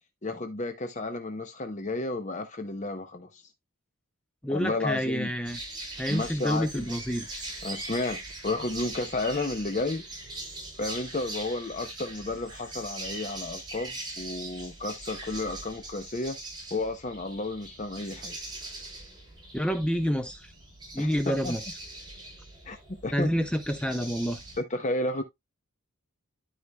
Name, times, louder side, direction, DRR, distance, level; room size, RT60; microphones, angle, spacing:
voice 1, 0.2-3.4 4.5-5.3 6.1-6.9 7.6-10.0 10.8-16.4 16.7-18.4 21.0-21.5 22.7-23.3 24.6-25.2, left 2 dB, 35° left, 0.7 m, -32 dB
voice 2, 4.4-5.6 6.0-7.4 19.5-20.5 20.9-21.7 23.1-24.4, equal, 5° left, 0.6 m, -28 dB
sound 1, 5.4-24.6, right 2 dB, 20° right, 6.0 m, -41 dB
12.5 x 5.0 x 2.3 m
head